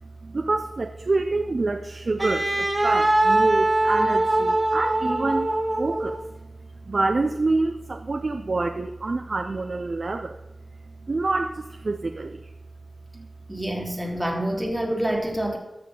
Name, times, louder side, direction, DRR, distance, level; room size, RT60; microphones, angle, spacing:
voice 1, 0.2-6.2 6.9-10.4 11.0-12.5 13.1-13.3, right 3 dB, 55° right, 6 dB, 0.6 m, -27 dB
Wind instrument woodwind instrument, 2.2-6.3, right 2 dB, 35° right, 1.8 m, -22 dB
voice 2, 13.5-15.6, right 1 dB, 10° right, 2 dB, 1.6 m, -27 dB
13.5 x 6.7 x 3.8 m, 0.98 s
wide cardioid pair, 100°, 0 cm